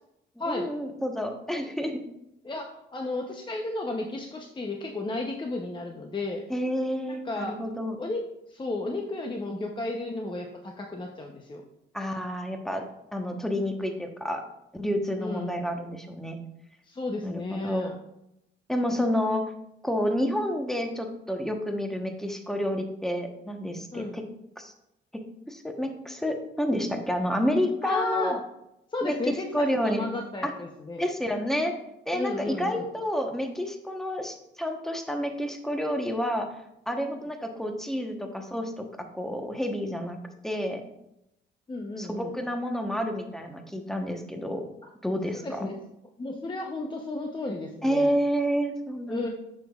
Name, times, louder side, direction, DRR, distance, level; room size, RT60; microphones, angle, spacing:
voice 1, 0.4-2.0 6.5-8.0 11.9-12.8 13.1-14.4 14.7-16.4 17.2-17.9 18.7-19.5 19.8-24.3 24.6-24.7 25.1-28.4 29.0-30.1 30.4-30.5 31.0-31.7 32.1-40.2 40.4-40.8 42.0-44.6 45.0-45.7 47.8-49.3, equal, ahead, 4 dB, 1.0 m, -29 dB
voice 2, 2.4-6.4 7.1-7.6 8.0-8.2 8.5-11.6 15.2-15.5 16.8-18.0 23.9-24.2 27.8-28.4 28.9-31.0 32.1-32.9 41.7-42.3 45.4-45.7 46.2-48.1 49.1-49.3, left 2 dB, 25° left, 2 dB, 0.8 m, -33 dB
8.7 x 6.1 x 2.4 m, 0.82 s
cardioid pair, 90°, 20 cm